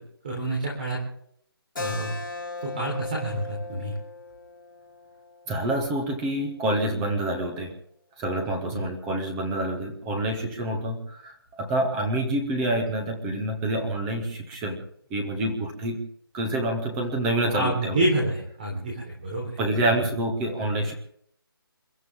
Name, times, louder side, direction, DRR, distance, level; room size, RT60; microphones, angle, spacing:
voice 1, 0.2-1.0 1.8-2.1 2.6-3.9 8.7-8.8 17.5-19.6, right 1 dB, 20° right, -2 dB, 3.8 m, -28 dB
Keyboard (musical), 1.8-6.9, left 3 dB, 55° left, 3.0 m, -38 dB
voice 2, 5.5-7.7 8.2-14.8 15.1-16.0 16.3-18.1 19.6-20.9, right 1 dB, 5° right, 3 dB, 0.6 m, -27 dB
28.5 x 13.5 x 3.6 m, 0.67 s
hypercardioid pair, 175°, 13 cm